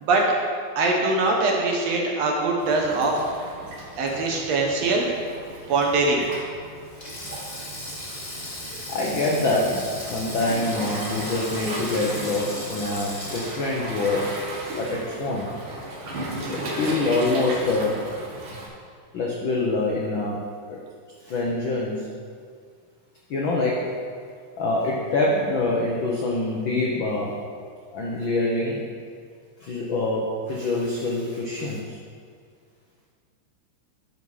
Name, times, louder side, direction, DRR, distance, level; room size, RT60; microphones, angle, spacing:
voice 1, 0.8-3.2 4.0-5.1 5.7-6.3, right 3 dB, 65° right, 0 dB, 1.9 m, -22 dB
Waves surf, 2.6-18.7, right 1 dB, 50° right, 2.0 m, -36 dB
Sink (filling or washing), 6.9-15.3 15.6-15.8 17.0-17.3, left 1 dB, 40° left, 0.6 m, -37 dB
voice 2, 8.9-14.3 14.8-15.5 16.5-18.0 19.1-20.4 20.7-20.8 21.2-22.1 23.3-23.9 24.6-27.4 27.9-28.8 29.6-32.0, left 2 dB, 90° left, -3 dB, 1.0 m, -25 dB
11.5 x 5.4 x 4.8 m, 2.1 s
omnidirectional pair, 3.6 m